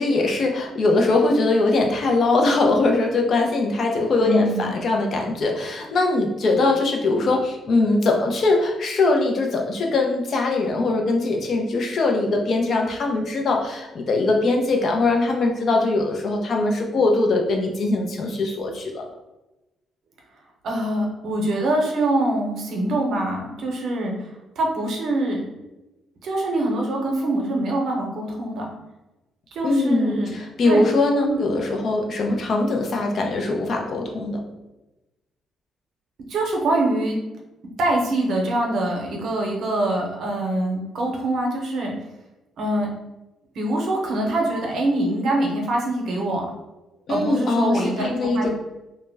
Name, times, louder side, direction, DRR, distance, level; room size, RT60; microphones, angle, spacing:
voice 1, 0.0-19.0 29.6-34.4 47.1-48.5, left 2 dB, 55° left, 2 dB, 0.5 m, -21 dB
voice 2, 4.2-4.7 20.6-24.3 24.6-25.4 26.2-28.7 29.5-30.3 30.7-30.9 31.2-31.4 36.3-37.2 37.8-41.9 42.6-42.9 43.6-46.4 47.1-48.5, right 1 dB, 70° right, 0 dB, 0.7 m, -24 dB
2.1 x 2.1 x 3.4 m, 1.0 s
cardioid pair, 90°, 0 cm